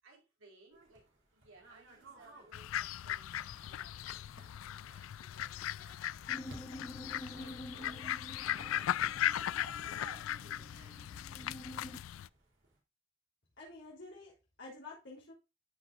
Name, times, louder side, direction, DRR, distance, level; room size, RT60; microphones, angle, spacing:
voice 1, 0.0-6.1 7.2-8.1 8.4-9.1 9.9-11.4 11.7-11.8, right 3 dB, 80° right, 4.1 m, -62 dB
sound 1, 0.7-12.8, right 1 dB, 65° right, 3.3 m, -59 dB
sound 2, 2.5-12.3, left 11 dB, 75° left, 0.3 m, -38 dB
sound 3, 6.3-12.0, equal, 15° left, 1.0 m, -49 dB
voice 2, 13.6-15.3, left 3 dB, 60° left, 3.5 m, -50 dB
13.0 x 6.0 x 2.5 m
head